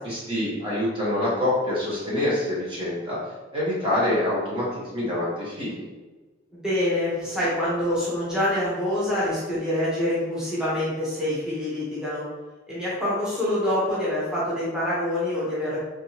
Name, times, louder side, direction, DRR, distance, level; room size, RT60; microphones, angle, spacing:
voice 1, 0.0-3.2 3.5-5.9, left 1 dB, 30° right, -7 dB, 1.2 m, -26 dB
voice 2, 6.5-12.2 12.7-15.9, left 1 dB, 5° right, -10 dB, 1.2 m, -26 dB
3.7 x 3.6 x 2.9 m, 1.2 s
head